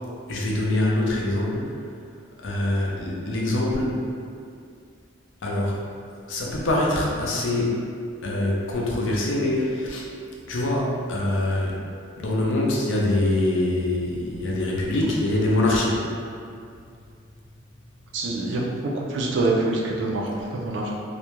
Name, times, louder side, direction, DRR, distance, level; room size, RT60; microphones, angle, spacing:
voice 1, 0.3-1.7 2.4-4.0 5.4-5.8 6.3-7.8 8.2-10.1 10.5-11.7 12.2-16.0, left 1 dB, 65° left, -3 dB, 0.5 m, -24 dB
voice 2, 18.1-18.6 18.9-20.9, right 2 dB, 60° right, -2 dB, 0.4 m, -25 dB
2.4 x 2.1 x 2.9 m, 2.4 s
head